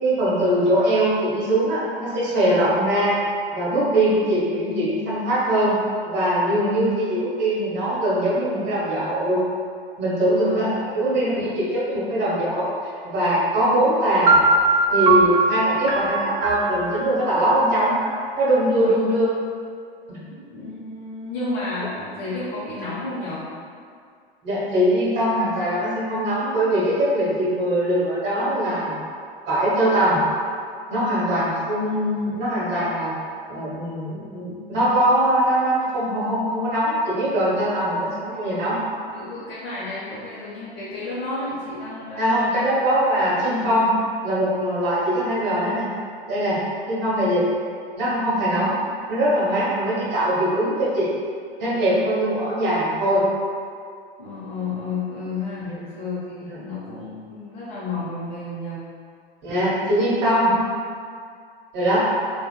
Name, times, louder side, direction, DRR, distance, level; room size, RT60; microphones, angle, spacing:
voice 1, 0.0-3.2 3.5-5.8 6.0-9.4 10.0-12.7 13.0-14.4 14.9-18.0 18.4-19.3 20.1-20.2 24.4-29.0 29.5-30.2 30.9-33.1 33.5-38.8 42.2-43.9 44.2-45.9 46.3-46.6 46.9-47.5 48.0-48.8 49.1-51.1 51.6-53.2 55.6-55.7 56.5-56.6 59.4-60.5 61.7-62.0, right 1 dB, 35° right, -8 dB, 1.2 m, -21 dB
voice 2, 10.3-10.6 10.9-11.6 18.8-19.1 20.3-23.5 37.8-38.4 39.1-42.8 43.6-43.8 54.2-58.8, left 3 dB, 65° left, -10 dB, 0.9 m, -32 dB
sound 1, 14.3-18.1, right 3 dB, 60° right, 0.6 m, -20 dB
3.5 x 2.5 x 2.2 m, 2.2 s
figure-of-eight pair, 85°, 29 cm